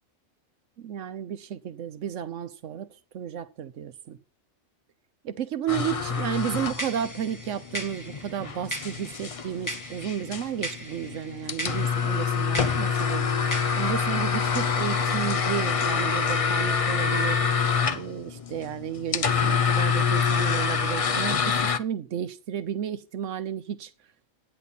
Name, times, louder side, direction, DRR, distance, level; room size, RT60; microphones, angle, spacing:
voice 1, 0.8-4.2 5.2-23.9, right 9 dB, 85° right, 1.1 m, -33 dB
sound 1, 5.7-21.8, left 6 dB, 40° left, 0.5 m, -26 dB
sound 2, 6.3-14.0, equal, 15° left, 1.5 m, -39 dB
13.0 x 9.8 x 4.1 m
omnidirectional pair, 1.2 m